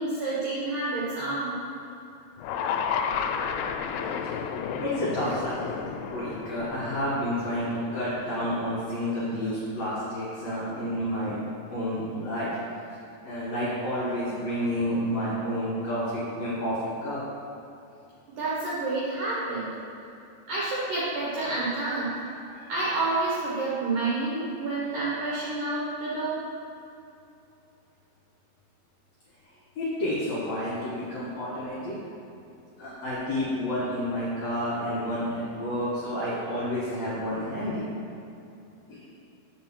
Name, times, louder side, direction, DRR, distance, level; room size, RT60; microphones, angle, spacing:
voice 1, 0.0-1.5 18.4-19.7 20.5-26.4, right 2 dB, 65° right, -7 dB, 2.2 m, -29 dB
sound 1, 2.4-8.6, left 7 dB, 85° left, 2.7 m, -32 dB
voice 2, 4.0-4.3 4.8-11.4 11.7-12.5 13.2-17.2 29.8-32.0 32.8-37.9 38.9-39.1, equal, 55° left, -9 dB, 2.1 m, -30 dB
7.7 x 5.2 x 6.2 m, 2.8 s
omnidirectional pair, 5.5 m